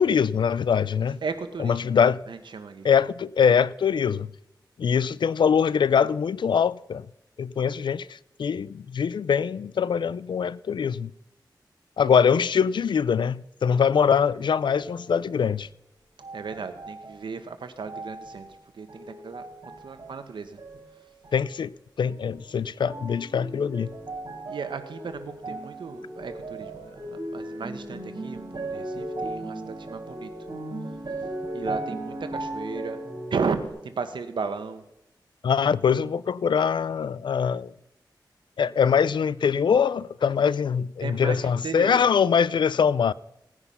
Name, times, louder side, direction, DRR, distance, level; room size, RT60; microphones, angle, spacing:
voice 1, 0.0-1.2 1.6-2.2 2.8-4.3 4.8-7.1 7.4-11.1 12.0-15.7 21.3-21.7 22.0-23.9 35.4-37.7 38.6-43.1, left 7 dB, 80° left, 0.4 m, -23 dB
voice 2, 1.2-1.8 2.3-2.9 16.3-18.5 18.7-20.6 24.5-30.3 31.5-33.0 33.3-34.8 41.0-42.0, right 5 dB, 90° right, 1.3 m, -35 dB
sound 1, 14.6-15.6 16.2-17.2 17.9-18.5 18.9-20.2 20.6-21.4 22.0-22.5 22.9-33.7, right 2 dB, 60° right, 4.9 m, -37 dB
17.0 x 9.8 x 5.7 m
wide cardioid pair, 80°, 8 cm